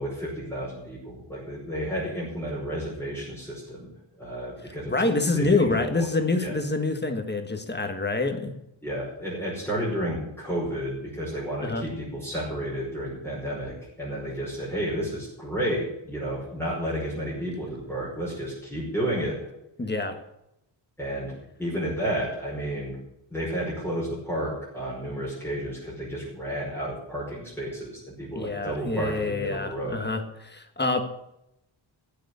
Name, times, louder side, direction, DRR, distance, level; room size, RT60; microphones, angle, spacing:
voice 1, 0.0-3.9 4.2-6.1 6.4-6.6 8.8-19.4 21.0-21.3 21.6-23.0 23.3-30.1, equal, 5° left, -8 dB, 5.4 m, -31 dB
voice 2, 4.6-8.5 11.6-11.9 19.8-20.2 28.3-31.0, left 3 dB, 20° left, 6 dB, 1.4 m, -26 dB
15.5 x 6.9 x 9.4 m, 0.83 s
wide cardioid pair, 175°, 47 cm